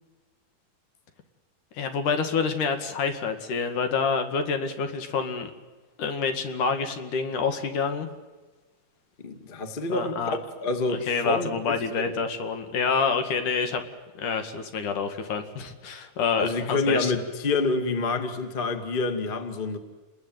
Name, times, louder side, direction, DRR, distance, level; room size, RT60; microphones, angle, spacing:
voice 1, 1.7-5.5 6.0-8.1 9.9-10.4 11.1-13.8 14.2-17.1, left 5 dB, 65° left, 7 dB, 3.4 m, -27 dB
voice 2, 9.2-10.2 10.6-11.6 12.0-12.1 16.4-19.8, left 3 dB, 20° left, 7 dB, 1.4 m, -27 dB
30.0 x 20.5 x 9.4 m, 1.2 s
omnidirectional pair, 4.0 m